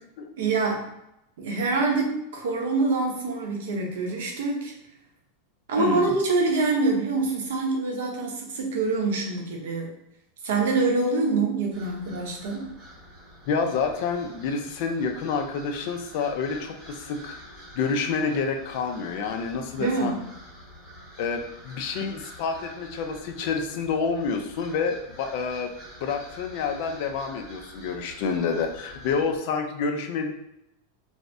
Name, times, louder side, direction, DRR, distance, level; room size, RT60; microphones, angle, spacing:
voice 1, 0.4-0.9 1.4-4.7 5.7-9.9 10.4-12.7 19.8-20.2, right 3 dB, 80° right, 0 dB, 0.7 m, -25 dB
voice 2, 5.7-6.1 13.5-20.2 21.2-25.7 26.0-30.3, left 5 dB, 55° left, 5 dB, 0.4 m, -28 dB
sound 1, 11.7-29.4, equal, 5° right, 1.1 m, -47 dB
2.6 x 2.0 x 3.3 m, 0.84 s
supercardioid pair, 150°, 0 cm